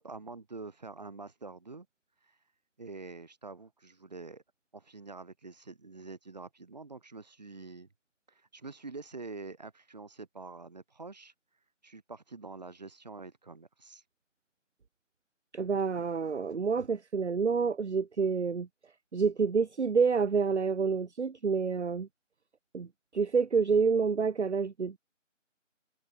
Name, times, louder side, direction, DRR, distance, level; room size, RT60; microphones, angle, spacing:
voice 1, 0.0-1.9 2.2-2.4 2.8-4.4 4.7-7.9 8.3-11.3 11.8-14.0, right 3 dB, 35° right, 5.3 m, -46 dB
voice 2, 15.5-18.7 19.1-22.1 22.7-22.9 23.1-25.0, right 5 dB, 60° right, 0.6 m, -28 dB
figure-of-eight pair, 170°, 38 cm